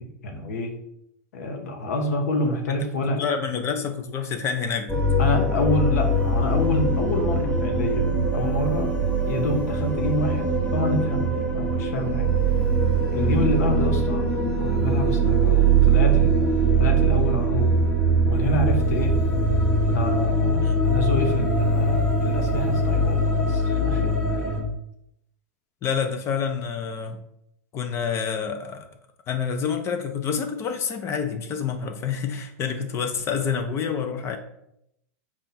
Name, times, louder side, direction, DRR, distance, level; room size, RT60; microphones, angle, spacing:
voice 1, 0.2-0.7 1.3-3.2 5.2-8.9 9.3-11.3 11.5-12.3 13.1-14.3 14.6-17.8 18.3-19.1 19.9-24.4, left 1 dB, 80° left, 4 dB, 0.8 m, -27 dB
voice 2, 3.2-5.0 20.6-20.8 25.8-27.2 27.7-28.9 29.3-34.4, left 6 dB, 35° left, 6 dB, 0.5 m, -28 dB
sound 1, 4.9-24.6, right 2 dB, 15° left, 1.0 m, -22 dB
4.2 x 2.4 x 3.9 m, 0.77 s
supercardioid pair, 125°, 8 cm